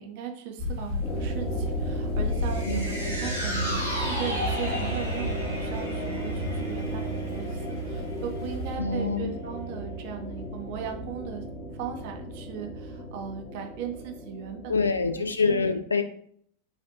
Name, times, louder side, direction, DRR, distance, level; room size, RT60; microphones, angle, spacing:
voice 1, 0.0-11.4 11.8-14.9 15.2-15.7, right 7 dB, 50° right, 4 dB, 0.7 m, -38 dB
sound 1, 0.6-8.8, left 1 dB, 45° left, 1.3 m, -35 dB
sound 2, 1.0-15.3, right 1 dB, 25° left, 0.8 m, -34 dB
sound 3, 2.4-8.8 9.2-9.3, equal, 85° right, 1.5 m, -35 dB
voice 2, 2.6-3.2 8.8-9.3 14.7-16.0, left 4 dB, 75° left, 8 dB, 0.4 m, -26 dB
4.9 x 2.6 x 2.6 m, 0.62 s
figure-of-eight pair, 90°, 0 cm